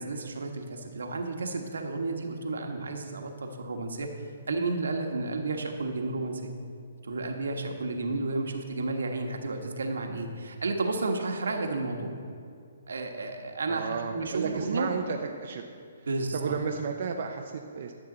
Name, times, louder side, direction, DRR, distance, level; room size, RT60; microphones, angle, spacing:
voice 1, 0.0-4.1 4.5-6.5 7.0-12.1 12.9-14.9 16.1-16.6, right 3 dB, 80° right, 4 dB, 1.3 m, -32 dB
voice 2, 13.7-15.6 16.0-16.1 16.3-17.9, right 6 dB, 60° right, 3 dB, 0.7 m, -33 dB
13.0 x 7.5 x 3.9 m, 2.3 s
hypercardioid pair, 145°, 0 cm